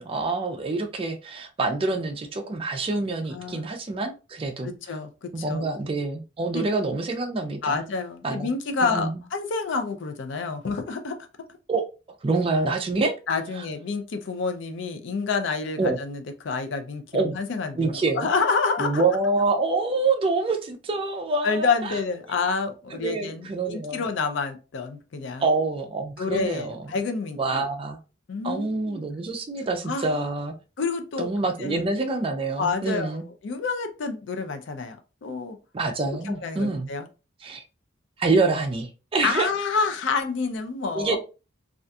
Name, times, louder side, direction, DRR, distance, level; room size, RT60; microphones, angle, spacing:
voice 1, 0.0-4.7 5.3-7.8 8.2-8.5 8.8-9.2 11.7-11.8 12.2-13.1 15.8-16.0 17.1-17.4 17.8-18.3 18.8-22.0 22.9-24.0 25.4-26.9 27.4-28.0 28.4-30.5 31.2-33.3 35.7-36.9 37.4-37.6 38.2-39.5 40.9-41.2, right 3 dB, 25° right, 0.3 m, -26 dB
voice 2, 3.3-3.7 4.6-5.7 6.5-6.7 7.6-11.2 13.3-19.0 21.4-25.4 26.2-27.7 28.3-29.0 29.9-30.2 30.8-31.3 31.6-31.8 32.6-35.6 36.2-37.1 39.2-41.2, left 4 dB, 60° left, 0.4 m, -28 dB
2.4 x 2.2 x 2.6 m
head